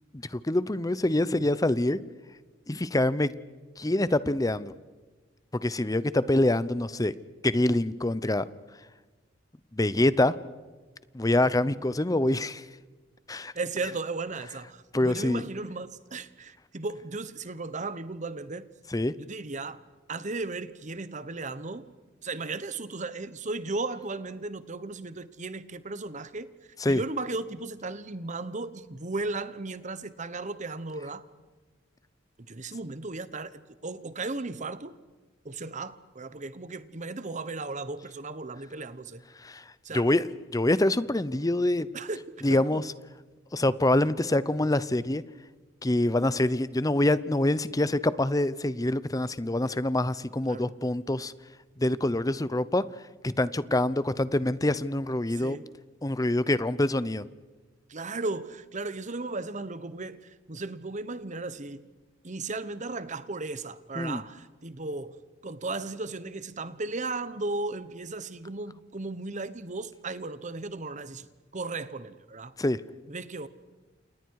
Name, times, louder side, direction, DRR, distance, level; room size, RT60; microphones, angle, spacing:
voice 1, 0.1-2.0 2.7-3.3 3.8-4.7 5.5-7.1 7.4-8.4 9.7-10.4 11.1-12.6 13.3-13.5 14.9-15.4 18.9-19.1 26.8-27.0 39.4-39.6 39.9-41.9 42.4-42.9 43.5-45.2 45.8-51.3 51.8-52.8 53.2-55.6 56.0-57.3 64.0-64.2 72.6-72.8, left 1 dB, 20° left, 0.7 m, -25 dB
voice 2, 13.5-18.7 19.2-19.8 20.1-21.9 22.2-26.5 26.8-31.2 32.5-34.9 35.4-39.2 39.8-40.1 41.9-42.2 42.5-42.8 50.5-50.7 55.4-55.7 57.9-61.8 62.2-65.2 65.4-71.3 71.5-72.5 73.1-73.5, right 3 dB, 40° right, 1.1 m, -36 dB
29.5 x 28.5 x 4.8 m
head